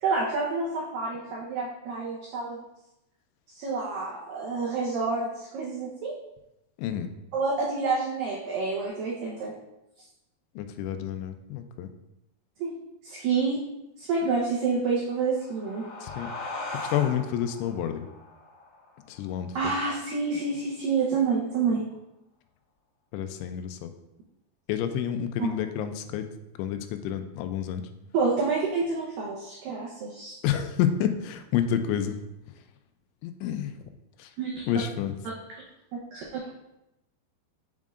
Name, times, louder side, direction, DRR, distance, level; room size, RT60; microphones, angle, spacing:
voice 1, 0.0-2.6 3.5-6.1 7.3-9.5 12.6-12.7 13.0-13.6 14.0-15.9 19.6-21.8 25.4-25.5 28.1-30.4 34.4-34.6 35.2-35.3 35.9-36.4, right 4 dB, 85° right, -4 dB, 1.9 m, -28 dB
voice 2, 6.8-7.1 10.6-11.9 16.0-16.5 16.8-18.1 19.1-19.6 23.1-23.9 24.7-26.2 26.6-27.8 30.4-32.2 33.2-33.7 34.2-34.3 34.7-35.2, left 9 dB, 90° left, 8 dB, 3.0 m, -29 dB
sound 1, 15.1-20.3, left 2 dB, 50° left, 2.6 m, -40 dB
7.5 x 7.2 x 2.5 m, 0.90 s
omnidirectional pair, 5.3 m